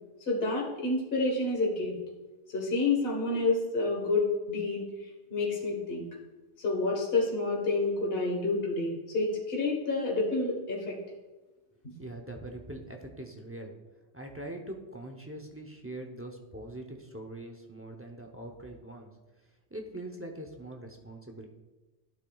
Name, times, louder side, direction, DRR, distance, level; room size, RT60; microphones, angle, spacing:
voice 1, 0.3-1.9 2.5-4.8 5.3-6.1 6.6-10.9, left 3 dB, 60° left, -2 dB, 1.7 m, -29 dB
voice 2, 12.0-13.7 14.1-19.1 19.7-21.5, right 1 dB, 15° right, 2 dB, 0.6 m, -42 dB
12.0 x 8.3 x 2.4 m, 1.1 s
omnidirectional pair, 1.2 m